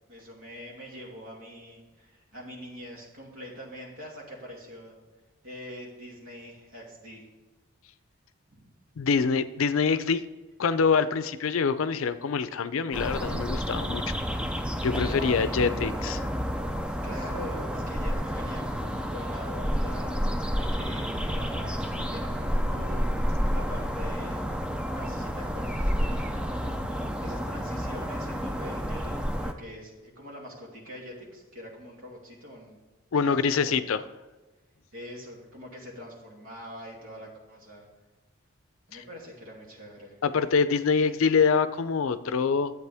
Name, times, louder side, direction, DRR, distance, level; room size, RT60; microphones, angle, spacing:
voice 1, 0.1-5.0 5.4-7.3 8.5-8.7 15.0-16.4 16.8-20.2 20.6-26.8 27.2-32.8 33.2-33.7 34.9-37.9 38.9-40.2, equal, 80° right, -3 dB, 2.6 m, -43 dB
voice 2, 9.0-10.2 10.6-14.1 14.8-16.2 33.1-34.0 40.2-42.7, left 5 dB, 80° left, 13 dB, 0.5 m, -25 dB
sound 1, 12.9-29.5, equal, 5° right, 0.4 m, -30 dB
11.0 x 8.1 x 3.5 m, 1.2 s
head